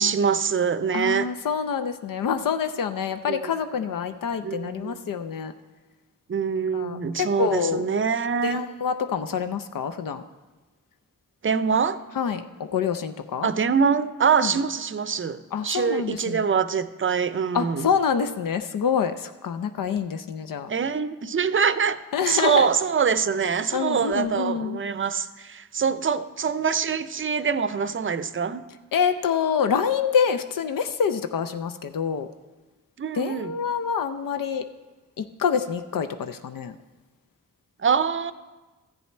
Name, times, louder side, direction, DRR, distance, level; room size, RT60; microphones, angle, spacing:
voice 1, 0.0-1.3 3.3-3.4 4.4-5.0 6.3-8.6 11.4-12.0 13.4-17.9 20.7-22.0 22.3-28.6 33.0-33.5 37.8-38.3, right 6 dB, 40° right, 14 dB, 0.5 m, -24 dB
voice 2, 0.9-5.5 6.7-7.9 8.4-10.2 12.2-12.4 12.7-13.5 14.4-14.5 15.5-16.4 17.5-20.7 22.1-22.7 23.7-24.8 28.9-32.3 33.1-34.6 35.2-36.7, left 7 dB, 80° left, 9 dB, 0.6 m, -26 dB
13.5 x 7.0 x 4.3 m, 1.2 s
cardioid pair, 60°, 33 cm